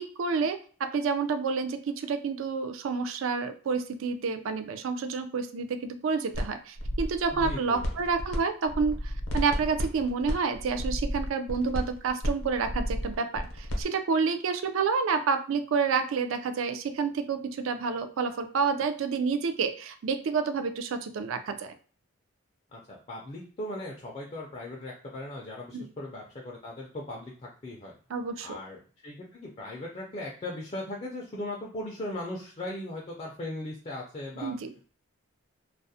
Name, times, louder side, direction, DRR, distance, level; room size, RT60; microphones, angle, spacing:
voice 1, 0.0-21.7 25.7-25.9 28.1-28.6 34.4-34.7, right 5 dB, 70° right, 8 dB, 0.4 m, -29 dB
sound 1, 6.3-6.5 6.8-8.4 8.6-13.8, equal, 65° left, 0.6 m, -32 dB
voice 2, 7.3-7.8 22.7-27.9 28.4-34.5, left 1 dB, 30° left, -2 dB, 0.4 m, -38 dB
2.3 x 2.0 x 2.6 m, 0.41 s
head